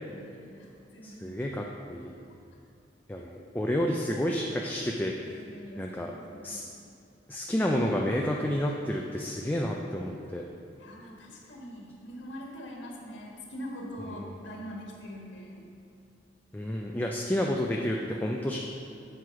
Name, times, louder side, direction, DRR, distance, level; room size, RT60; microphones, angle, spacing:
voice 1, 0.1-1.7 3.2-3.3 5.1-6.7 10.8-15.7, equal, 90° left, -2 dB, 1.3 m, -43 dB
voice 2, 1.0-2.1 3.1-5.4 5.8-6.1 6.4-6.6 7.3-10.4 16.5-18.6, equal, 10° left, 0 dB, 0.3 m, -30 dB
7.8 x 4.7 x 5.7 m, 2.6 s
head